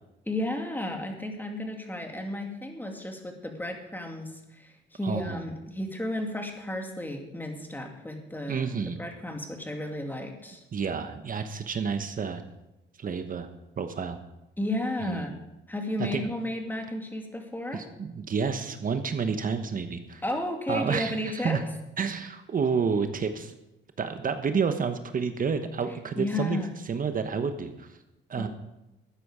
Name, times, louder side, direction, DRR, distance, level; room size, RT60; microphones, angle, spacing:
voice 1, 0.3-8.7 9.0-10.6 14.6-15.4 15.7-17.8 20.2-21.6 25.9-26.7 28.4-28.5, left 1 dB, 10° left, 3 dB, 2.4 m, -33 dB
voice 2, 5.0-5.4 8.5-9.0 10.7-12.4 13.0-13.5 13.8-14.2 15.0-15.3 16.1-16.3 17.7-20.2 20.7-21.6 22.0-23.5 24.0-26.6 26.8-27.9 28.3-28.5, right 6 dB, 45° right, 8 dB, 1.1 m, -29 dB
13.0 x 9.9 x 5.0 m, 0.95 s
cardioid pair, 90°, 20 cm